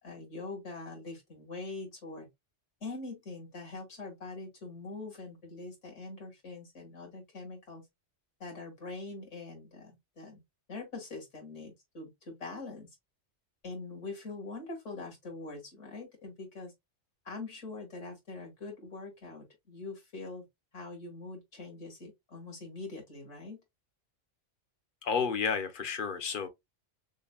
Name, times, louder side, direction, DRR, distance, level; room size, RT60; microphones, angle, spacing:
voice 1, 0.0-2.3 2.8-7.8 8.4-10.4 10.7-12.9 13.6-16.7 17.2-20.4 20.7-23.6, left 3 dB, 75° left, 2.4 m, -43 dB
voice 2, 25.0-26.5, left 6 dB, 50° left, 0.9 m, -31 dB
6.4 x 2.2 x 2.3 m
omnidirectional pair, 1.3 m